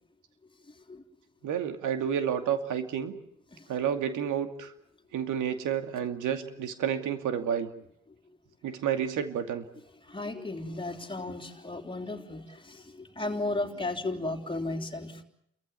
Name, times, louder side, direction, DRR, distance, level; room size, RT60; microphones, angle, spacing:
voice 1, 1.4-3.1 3.7-4.7 5.1-7.7 8.6-9.6, right 8 dB, 80° right, 8 dB, 2.6 m, -30 dB
voice 2, 10.1-15.2, left 2 dB, 15° left, 5 dB, 3.4 m, -35 dB
30.0 x 15.0 x 9.6 m, 0.76 s
cardioid pair, 90°, 30 cm